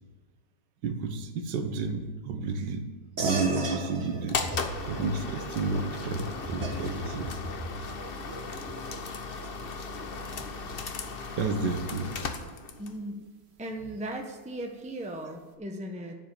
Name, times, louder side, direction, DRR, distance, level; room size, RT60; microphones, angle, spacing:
voice 1, 0.8-2.9 3.2-4.4 4.9-7.3 10.3-10.8 11.4-12.2, right 4 dB, 60° right, 6 dB, 1.7 m, -31 dB
sound 1, 3.2-13.0, right 2 dB, 35° right, 1.3 m, -38 dB
sound 2, 4.3-13.0, left 4 dB, 80° left, 0.5 m, -37 dB
voice 2, 12.8-13.2 13.6-16.2, right 1 dB, 10° right, 2 dB, 0.3 m, -37 dB
10.0 x 7.5 x 9.1 m, 1.3 s
omnidirectional pair, 2.3 m